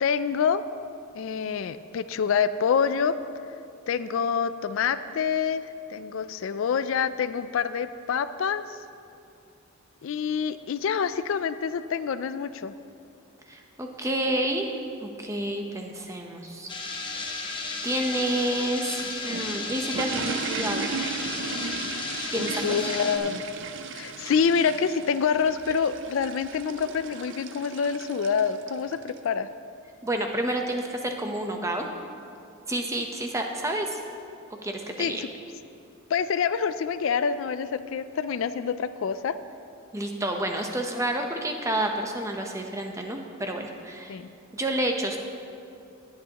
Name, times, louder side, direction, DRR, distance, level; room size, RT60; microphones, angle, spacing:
voice 1, 0.0-0.6 1.1-3.1 3.9-5.6 5.9-8.8 10.0-12.7 22.3-23.4 23.9-29.5 35.0-35.3 36.1-39.3 44.1-44.3, left 6 dB, 65° left, 13 dB, 0.3 m, -26 dB
voice 2, 13.5-14.7 15.0-16.7 17.3-17.6 17.8-20.9 22.3-22.6 30.0-31.9 32.7-34.0 34.6-35.2 39.9-44.2 44.5-45.2, right 1 dB, 15° right, 3 dB, 0.8 m, -29 dB
sound 1, 16.7-23.2, left 3 dB, 20° left, 0.9 m, -34 dB
sound 2, 18.9-29.2, right 5 dB, 55° right, 0.5 m, -36 dB
20.5 x 8.6 x 2.9 m, 2.6 s
head